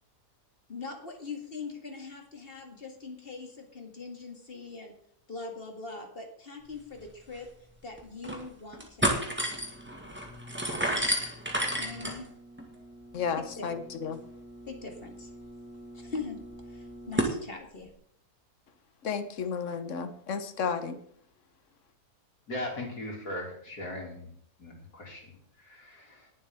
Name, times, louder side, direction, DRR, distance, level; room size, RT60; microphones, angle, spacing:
voice 1, 0.7-4.9 5.3-7.5 7.8-9.5 11.8-12.3 14.7-15.3 15.9-16.4 16.7-17.9, left 4 dB, 35° left, 3 dB, 2.2 m, -41 dB
sound 1, 7.0-7.1 7.4-7.5 8.0-8.4 8.7-17.4, right 1 dB, 5° right, 1.9 m, -33 dB
voice 2, 13.1-14.2 19.0-21.0, left 6 dB, 50° left, 9 dB, 1.3 m, -32 dB
voice 3, 22.5-24.3 24.6-26.3, left 1 dB, 70° left, 0 dB, 3.5 m, -39 dB
20.0 x 7.5 x 3.7 m, 0.64 s
omnidirectional pair, 1.7 m